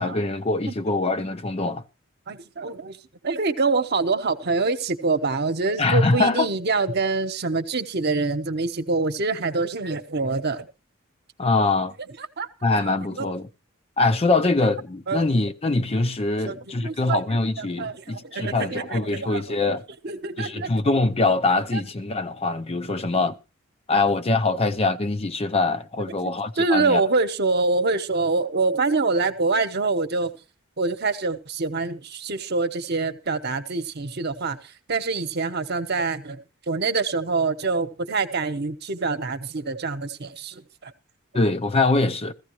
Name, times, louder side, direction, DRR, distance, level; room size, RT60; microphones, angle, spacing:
voice 1, 0.0-1.8 5.8-6.5 11.4-11.9 12.6-13.5 14.0-19.8 20.4-23.4 23.9-27.0 41.3-42.3, left 3 dB, 30° left, 0.6 m, -23 dB
voice 2, 2.3-3.0 3.2-10.7 12.4-12.5 13.2-13.3 15.1-15.2 16.5-17.2 17.6-19.6 20.0-20.7 21.7-21.8 26.2-30.3 30.8-34.6 34.9-36.4 36.7-40.9, right 3 dB, 55° right, 1.0 m, -25 dB
15.5 x 15.0 x 3.0 m
head